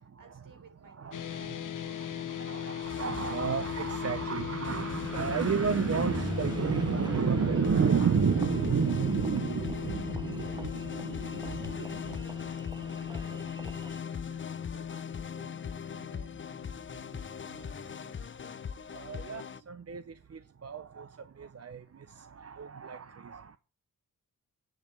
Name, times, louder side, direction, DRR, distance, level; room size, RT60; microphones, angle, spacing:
voice 1, 0.0-1.2 9.2-9.4 10.5-10.9 11.4-16.5, right 3 dB, 70° right, 3.5 m, -58 dB
voice 2, 0.8-12.2 14.3-14.4 18.9-23.6, right 6 dB, 45° right, 0.7 m, -31 dB
sound 1, 1.1-17.5, left 9 dB, 65° left, 0.8 m, -38 dB
sound 2, 2.8-19.6, left 7 dB, 35° left, 0.5 m, -42 dB
Engine, 5.0-14.0, right 2 dB, 15° right, 0.6 m, -45 dB
9.0 x 7.2 x 7.5 m
cardioid pair, 70°, 34 cm